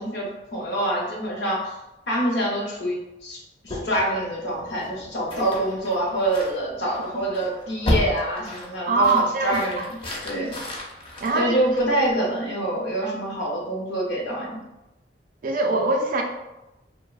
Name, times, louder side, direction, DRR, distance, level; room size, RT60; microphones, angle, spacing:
voice 1, 0.0-1.7 2.1-10.0 10.2-10.6 11.3-14.6, right 1 dB, 80° left, -2 dB, 0.7 m, -26 dB
sound 1, 3.7-12.1, left 1 dB, 30° left, 0.4 m, -33 dB
voice 2, 8.9-9.8 11.2-11.6 13.0-13.2 15.4-16.2, right 3 dB, 50° right, 3 dB, 0.3 m, -23 dB
2.6 x 2.0 x 2.3 m, 0.95 s
head